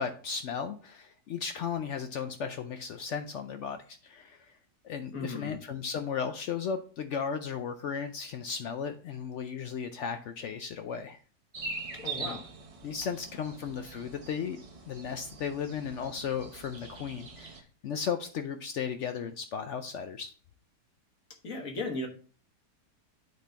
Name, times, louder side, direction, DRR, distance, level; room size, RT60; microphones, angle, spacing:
voice 1, 0.0-4.5 4.8-11.2 12.2-12.4 12.8-14.6 14.9-20.3, left 7 dB, 75° left, 8 dB, 0.6 m, -35 dB
voice 2, 5.1-5.6 11.9-12.5 21.4-22.1, left 2 dB, 55° left, 3 dB, 1.6 m, -36 dB
sound 1, 11.5-17.6, right 4 dB, 35° right, 0.5 m, -43 dB
8.2 x 4.3 x 3.3 m, 0.39 s
omnidirectional pair, 1.8 m